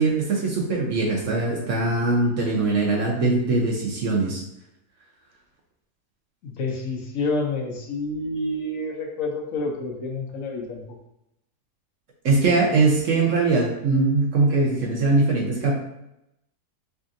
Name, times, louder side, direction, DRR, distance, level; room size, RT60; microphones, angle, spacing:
voice 1, 0.0-4.4 12.2-15.8, right 3 dB, 60° right, -2 dB, 0.9 m, -21 dB
voice 2, 6.4-11.0, left 2 dB, 65° left, 0 dB, 0.9 m, -28 dB
4.9 x 2.6 x 2.5 m, 0.83 s
omnidirectional pair, 1.9 m